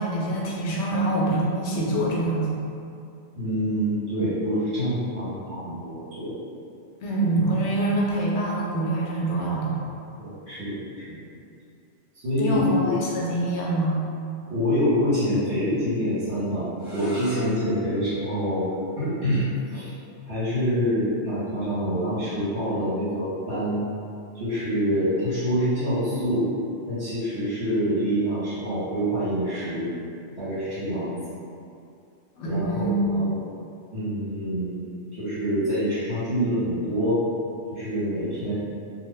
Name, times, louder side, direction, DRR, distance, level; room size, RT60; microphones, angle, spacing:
voice 1, 0.0-2.5 7.0-9.8 12.4-14.0 32.4-33.2, right 1 dB, 80° left, -4 dB, 0.9 m, -25 dB
voice 2, 3.3-6.3 10.2-10.8 11.1-11.2 12.1-12.9 14.5-18.7 19.0-19.9 20.3-23.9 24.3-26.5 26.9-29.9 30.3-31.1 32.4-33.4 33.9-37.2 37.7-38.5, equal, 55° right, -15 dB, 1.4 m, -26 dB
sound 1, 16.7-22.5, left 2 dB, 15° right, 1.4 m, -46 dB
2.7 x 2.2 x 3.2 m, 2.5 s
omnidirectional pair, 1.2 m